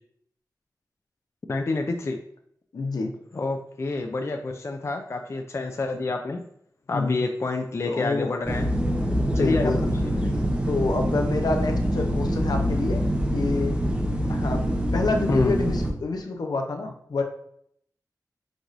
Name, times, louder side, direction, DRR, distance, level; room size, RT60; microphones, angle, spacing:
voice 1, 1.5-2.2 3.3-6.4 6.9-8.7 9.3-10.2 15.3-15.6, left 3 dB, 40° left, 4 dB, 0.3 m, -28 dB
voice 2, 2.7-3.1 6.9-7.2 7.9-8.3 9.2-9.8 10.7-13.0 13.3-13.8 14.3-14.6 14.9-17.2, left 3 dB, 75° left, 4 dB, 0.6 m, -27 dB
sound 1, 8.4-15.9, equal, 15° right, 0.7 m, -25 dB
4.7 x 2.5 x 3.9 m, 0.68 s
wide cardioid pair, 90°, 7 cm